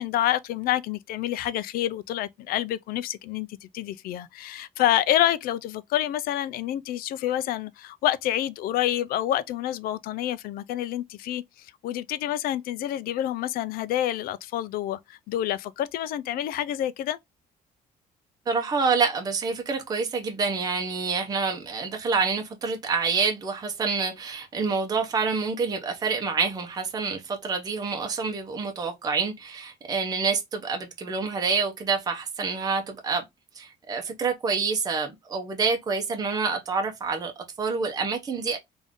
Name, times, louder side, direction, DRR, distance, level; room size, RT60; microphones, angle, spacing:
voice 1, 0.0-3.5 3.7-17.2, left 12 dB, 75° left, 0.4 m, -28 dB
voice 2, 18.5-33.2 33.6-38.6, right 5 dB, 25° right, 0.7 m, -27 dB
3.6 x 2.6 x 3.5 m
cardioid pair, 170°, 15 cm